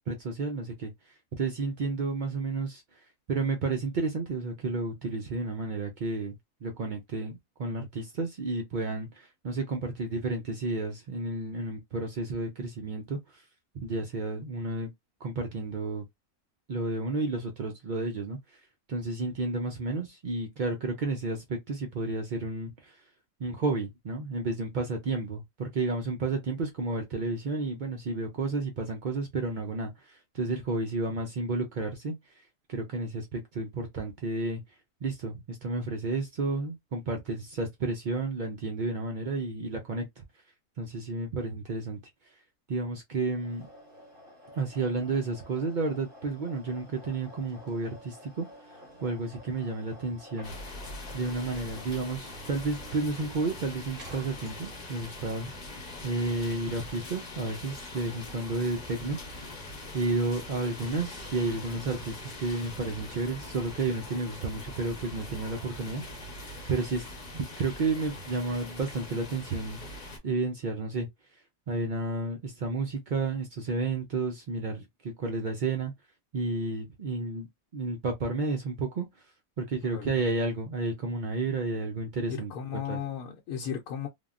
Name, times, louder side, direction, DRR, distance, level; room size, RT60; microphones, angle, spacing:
voice 1, 0.0-2.8 3.3-6.3 6.6-13.4 13.8-14.9 15.2-16.0 16.7-18.6 18.9-23.0 23.4-32.4 32.7-34.6 35.0-40.2 40.8-42.0 42.7-43.7 44.5-48.5 49.0-50.6 51.1-55.5 56.0-59.2 59.9-66.3 66.7-67.1 67.3-69.8 70.2-71.1 71.7-75.9 76.3-77.5 77.7-79.1 79.6-82.5 82.9-83.0, right 3 dB, 75° right, 0.4 m, -31 dB
sound 1, 43.3-55.0, equal, 60° right, 1.7 m, -51 dB
sound 2, 50.4-70.2, left 2 dB, 40° left, 0.7 m, -42 dB
voice 2, 79.8-80.2 82.3-84.1, left 8 dB, 85° left, 1.1 m, -36 dB
3.4 x 2.2 x 2.4 m
omnidirectional pair, 1.5 m